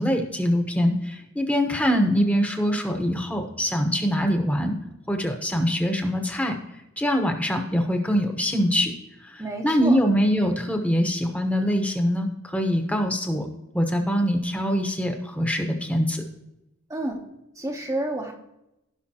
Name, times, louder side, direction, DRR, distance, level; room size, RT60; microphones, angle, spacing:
voice 1, 0.0-4.8 5.1-6.6 7.0-8.9 9.2-13.5 13.7-16.2, equal, 5° left, 4 dB, 1.0 m, -23 dB
voice 2, 9.4-10.0 16.9-18.3, right 1 dB, 15° right, 0 dB, 0.8 m, -30 dB
16.0 x 5.7 x 2.9 m, 0.89 s
head